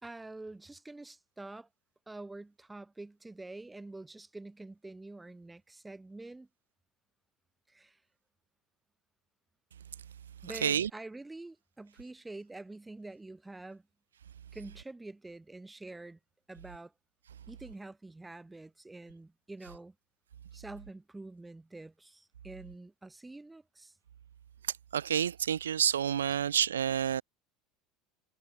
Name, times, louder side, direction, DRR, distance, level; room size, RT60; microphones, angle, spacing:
voice 1, 0.0-1.7 2.1-6.5 7.7-8.0 10.4-13.8 14.5-16.2 16.5-16.9 17.5-19.9 20.5-23.9, right 2 dB, 10° right, 5.4 m, -46 dB
voice 2, 24.9-27.2, right 9 dB, 85° right, 1.2 m, -28 dB
hypercardioid pair, 80°, 0 cm